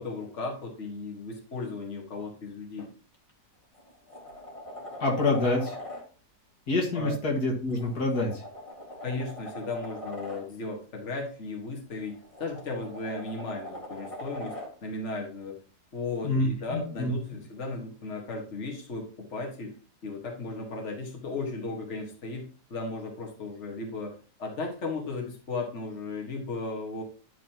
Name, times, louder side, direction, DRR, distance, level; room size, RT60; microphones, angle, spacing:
voice 1, 0.0-2.9 6.9-7.2 9.0-14.5 14.8-15.6 15.9-19.7 20.0-24.1 24.4-27.0, left 3 dB, 45° left, 0 dB, 1.9 m, -35 dB
sound 1, 3.1-3.3 3.7-6.0 7.7-10.4 11.9-14.7 17.0-17.1, left 1 dB, 20° left, 2.0 m, -41 dB
voice 2, 5.0-5.8 6.7-8.4 16.2-17.1, left 2 dB, 70° left, 0 dB, 2.3 m, -27 dB
11.0 x 5.4 x 2.9 m, 0.38 s
omnidirectional pair, 1.7 m